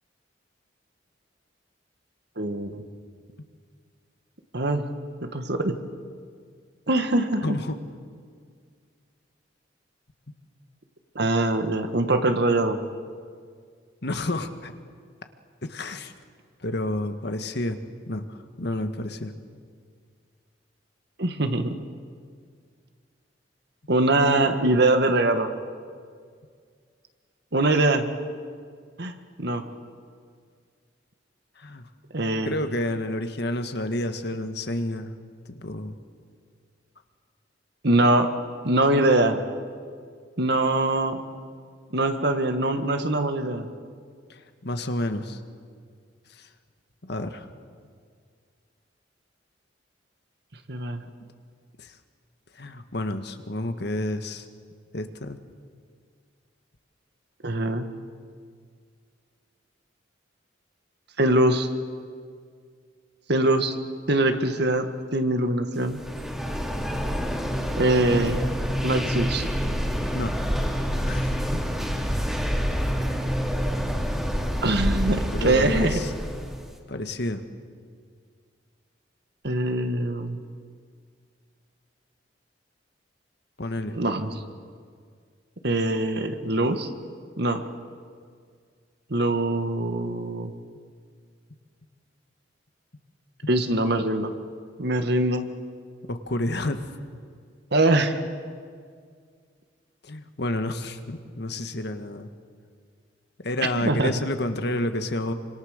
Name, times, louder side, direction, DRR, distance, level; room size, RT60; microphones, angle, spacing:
voice 1, 2.4-2.8 4.5-4.8 5.2-5.8 6.9-7.6 11.2-12.8 21.2-21.8 23.9-25.5 27.5-28.1 29.0-29.6 32.1-32.5 37.8-38.3 38.6-39.4 40.4-41.2 41.9-43.7 50.7-51.0 57.4-57.9 61.2-61.7 63.3-63.8 64.1-64.9 65.1-66.0 67.7-68.5 68.8-69.5 74.6-76.0 79.4-80.4 83.9-84.3 85.6-86.9 87.4-87.6 89.1-90.5 93.5-94.3 94.8-95.5 97.7-98.2 103.8-104.1, right 2 dB, 60° right, 7 dB, 1.7 m, -23 dB
voice 2, 7.4-7.8 14.0-14.7 15.6-16.1 16.6-17.8 18.0-19.3 31.6-31.9 32.4-35.1 35.5-36.0 44.3-45.4 46.3-46.5 47.0-47.5 51.8-52.0 52.5-54.5 54.9-55.4 66.3-66.4 70.1-70.7 71.1-71.6 75.3-76.1 76.9-77.4 83.6-83.9 96.1-96.8 100.0-102.3 103.4-105.3, left 1 dB, 65° left, 8 dB, 1.6 m, -30 dB
sound 1, 65.8-76.7, equal, 5° right, 2.7 m, -27 dB
27.0 x 25.5 x 6.6 m, 2.1 s
head